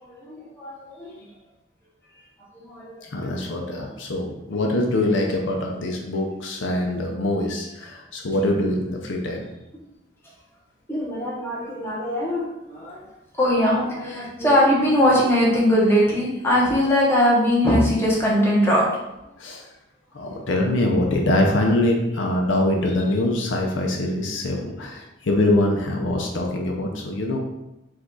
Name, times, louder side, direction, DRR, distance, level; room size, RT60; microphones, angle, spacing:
voice 1, 0.0-1.1 2.5-2.9 10.9-13.0 13.4-18.8, equal, 10° left, -5 dB, 1.0 m, -21 dB
voice 2, 3.0-9.5 19.4-19.7 20.1-27.4, left 1 dB, 70° left, 1 dB, 0.6 m, -23 dB
5.0 x 2.4 x 3.9 m, 0.93 s
head